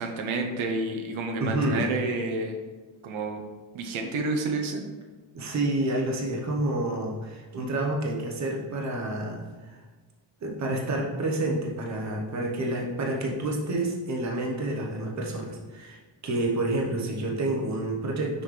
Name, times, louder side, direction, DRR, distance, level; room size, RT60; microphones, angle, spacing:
voice 1, 0.0-2.6 3.0-3.4 3.7-4.8, right 3 dB, 85° right, 3 dB, 0.9 m, -29 dB
voice 2, 1.4-1.9 5.3-9.8 10.4-18.4, right 1 dB, 35° right, -1 dB, 1.0 m, -29 dB
5.9 x 5.2 x 3.2 m, 1.3 s
wide cardioid pair, 180°, 47 cm